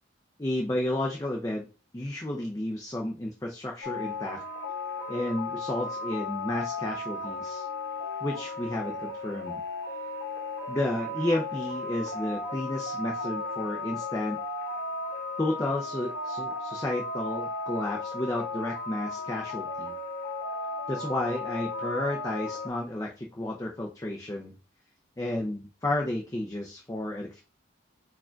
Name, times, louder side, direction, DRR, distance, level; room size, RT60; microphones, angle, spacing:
voice 1, 0.4-1.6 1.9-4.4 5.1-7.7 8.2-9.6 10.7-14.4 15.4-19.9 20.9-24.5 25.2-27.4, left 1 dB, 15° left, 0 dB, 0.5 m, -32 dB
sound 1, 3.8-22.7, left 3 dB, 55° left, 1.0 m, -35 dB
4.7 x 2.4 x 4.4 m, 0.34 s
head